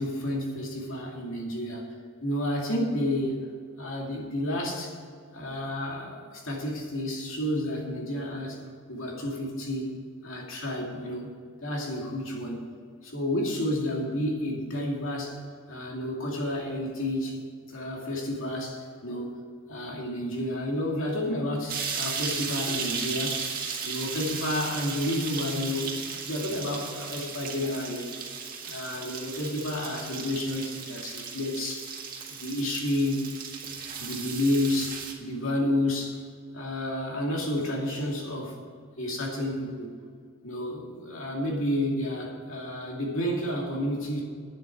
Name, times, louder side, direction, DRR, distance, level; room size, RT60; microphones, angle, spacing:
voice 1, 0.0-1.9 2.2-3.4 3.8-5.0 5.3-8.6 8.9-9.9 10.2-11.3 11.6-12.6 13.0-15.4 15.7-17.4 17.7-19.4 19.7-28.1 28.6-31.9 32.3-33.2 34.0-36.2 36.5-38.6 39.0-39.9 40.4-44.2, left 1 dB, 65° left, -1 dB, 2.6 m, -30 dB
sound 1, 21.7-35.1, right 6 dB, 40° right, 1.7 m, -36 dB
9.8 x 7.9 x 7.8 m, 2.1 s
head